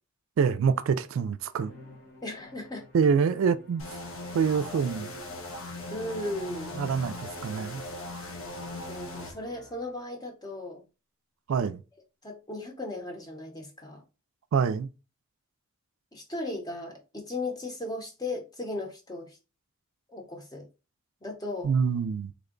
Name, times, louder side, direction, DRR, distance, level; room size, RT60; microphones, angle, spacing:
voice 1, 0.4-1.7 2.9-3.8 4.3-5.2 6.8-7.8 11.5-11.8 14.5-14.9 21.6-22.3, right 6 dB, 70° right, 0.3 m, -26 dB
Musical instrument, 1.6-10.2, left 2 dB, 40° left, 1.0 m, -53 dB
voice 2, 2.2-2.8 4.3-4.4 5.9-6.8 8.9-10.8 12.2-14.0 16.1-19.4 20.1-20.7 21.2-21.8, left 2 dB, 20° left, 0.7 m, -36 dB
sound 1, 3.8-9.3, left 2 dB, 75° left, 0.8 m, -39 dB
3.5 x 2.1 x 3.7 m
head